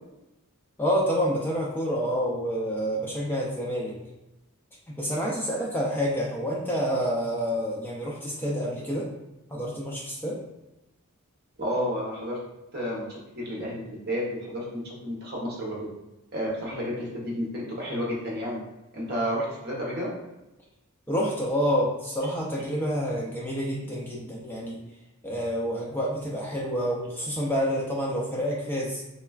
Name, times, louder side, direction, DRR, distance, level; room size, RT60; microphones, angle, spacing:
voice 1, 0.8-4.0 4.9-9.1 9.5-10.4 21.1-24.8 25.2-29.0, equal, 10° left, -4 dB, 0.3 m, -28 dB
voice 2, 11.6-12.4 12.7-13.1 13.4-15.9 16.3-18.6 18.9-20.1, equal, 45° right, -4 dB, 0.9 m, -31 dB
3.2 x 2.3 x 2.3 m, 0.97 s
head